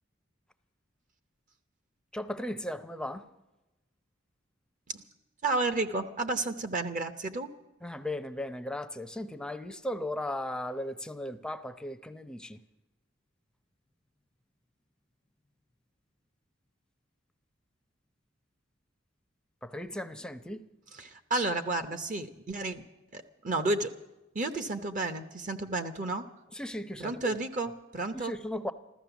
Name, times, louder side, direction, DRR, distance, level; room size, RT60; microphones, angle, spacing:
voice 1, 2.1-3.3 7.8-12.6 19.6-20.7 26.5-27.4 28.1-28.7, left 1 dB, 5° left, 0.6 m, -37 dB
voice 2, 5.4-7.5 21.0-22.8 23.1-23.9 24.3-26.3 27.0-28.3, right 2 dB, 40° right, 0.9 m, -32 dB
14.0 x 14.0 x 7.0 m
head